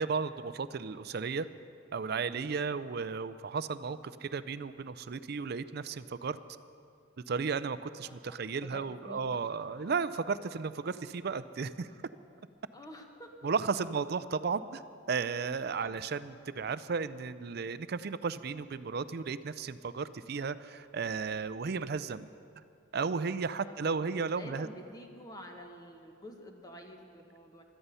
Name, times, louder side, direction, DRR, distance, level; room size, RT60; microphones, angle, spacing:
voice 1, 0.0-1.5 1.9-6.4 7.3-11.9 13.4-14.8 15.1-22.3 22.9-24.7, right 5 dB, 55° right, 14 dB, 0.5 m, -34 dB
voice 2, 8.0-8.4 8.7-9.3 12.7-13.3 15.7-16.0 23.7-24.1 24.4-27.6, equal, 20° left, 3 dB, 1.3 m, -49 dB
17.0 x 12.5 x 5.6 m, 2.5 s
head